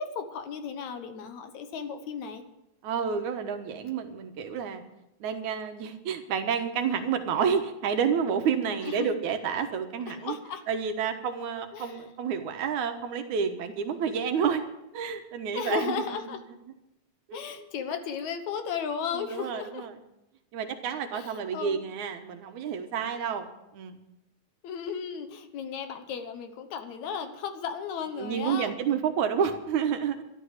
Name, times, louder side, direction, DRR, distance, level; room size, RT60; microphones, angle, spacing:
voice 1, 0.0-2.4 8.8-9.1 10.1-10.6 11.7-12.0 15.5-16.4 17.3-19.9 21.1-21.8 24.6-28.7, left 7 dB, 75° left, 8 dB, 2.5 m, -35 dB
voice 2, 2.8-4.8 5.2-10.4 10.7-14.6 14.9-16.0 17.3-17.7 19.1-20.0 20.5-23.5 23.7-24.0 28.2-30.2, right 7 dB, 80° right, 7 dB, 2.6 m, -29 dB
12.5 x 12.0 x 6.5 m, 0.88 s
omnidirectional pair, 3.3 m